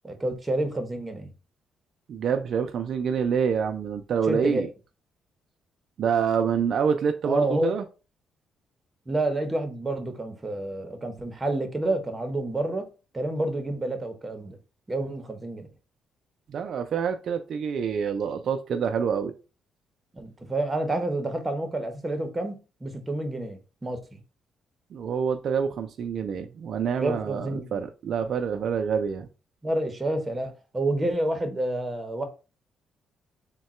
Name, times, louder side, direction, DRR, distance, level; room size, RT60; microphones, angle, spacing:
voice 1, 0.0-1.3 4.3-4.7 7.2-7.7 9.1-12.9 13.1-14.6 14.9-15.7 20.1-24.2 27.0-27.8 29.6-32.2, right 2 dB, 20° right, 0.9 m, -29 dB
voice 2, 2.1-4.7 6.0-7.8 16.5-19.3 24.9-29.3, right 7 dB, 60° right, 0.4 m, -27 dB
3.6 x 2.2 x 4.2 m
cardioid pair, 90°, 0 cm